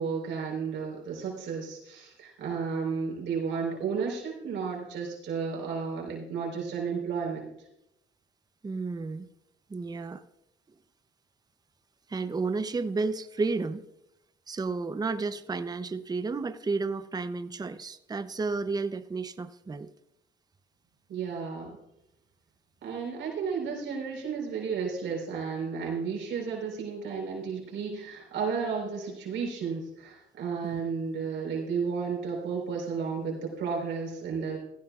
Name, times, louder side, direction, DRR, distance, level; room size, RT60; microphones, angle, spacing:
voice 1, 0.0-7.5 21.1-21.7 22.8-34.6, right 5 dB, 75° right, -1 dB, 4.2 m, -33 dB
voice 2, 8.6-9.3 9.7-10.2 12.1-13.9 14.5-19.9 30.6-30.8, right 4 dB, 20° right, 11 dB, 0.6 m, -32 dB
16.0 x 15.5 x 2.4 m, 0.84 s
cardioid pair, 90°, 20 cm